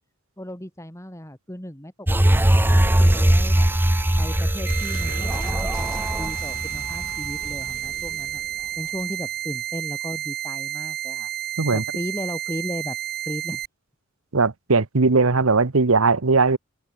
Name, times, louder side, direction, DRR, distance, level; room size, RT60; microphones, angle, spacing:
voice 1, 0.4-3.7 4.2-8.4 8.8-11.3 11.7-13.0 13.2-13.6, equal, 15° left, 3.8 m, -35 dB
sound 1, 2.1-7.7 8.1-8.2, right 1 dB, 10° right, 0.7 m, -20 dB
sound 2, 3.8-10.0, left 2 dB, 65° left, 3.1 m, -44 dB
sound 3, 4.7-13.7, right 12 dB, 45° right, 1.0 m, -31 dB
voice 2, 14.3-16.6, right 4 dB, 90° right, 1.1 m, -19 dB
open air
head